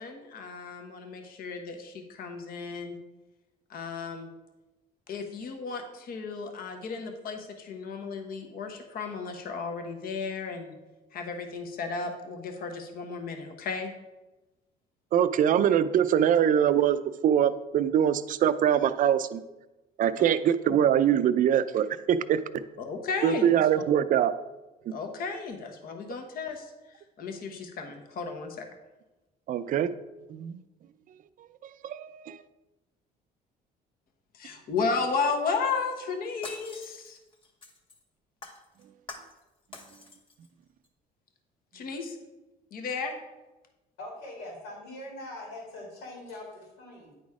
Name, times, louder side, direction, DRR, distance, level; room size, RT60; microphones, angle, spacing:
voice 1, 0.0-3.0 3.7-4.3 5.1-10.7 11.1-13.9 20.2-20.3 20.6-20.8 22.8-23.5 24.9-26.7 27.2-28.6 34.3-37.2 41.7-42.2 42.7-43.1, left 4 dB, 60° left, 1.2 m, -34 dB
voice 2, 15.1-19.4 20.0-22.4 23.2-24.3 24.9-25.0 29.5-29.9 30.3-30.6 31.8-32.4, right 9 dB, 50° right, 0.5 m, -23 dB
Shatter, 35.9-38.0 38.4-39.4 39.7-40.5 40.8-40.9, left 3 dB, 30° left, 1.3 m, -46 dB
voice 3, 44.0-47.1, left 1 dB, 90° left, 2.4 m, -42 dB
9.5 x 4.1 x 4.8 m
cardioid pair, 110°, 17 cm